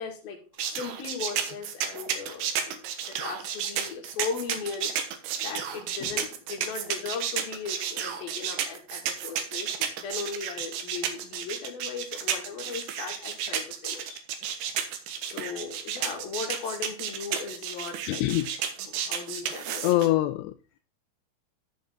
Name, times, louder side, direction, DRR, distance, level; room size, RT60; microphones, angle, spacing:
voice 1, 0.0-4.9 5.4-14.2 15.2-18.3 18.8-20.1, left 6 dB, 60° left, 1 dB, 3.6 m, -37 dB
sound 1, 0.6-20.1, right 8 dB, 70° right, 2.9 m, -32 dB
voice 2, 18.1-18.5 19.8-20.8, left 15 dB, 85° left, 8 dB, 2.5 m, -25 dB
13.5 x 5.6 x 3.8 m, 0.36 s
omnidirectional pair, 5.4 m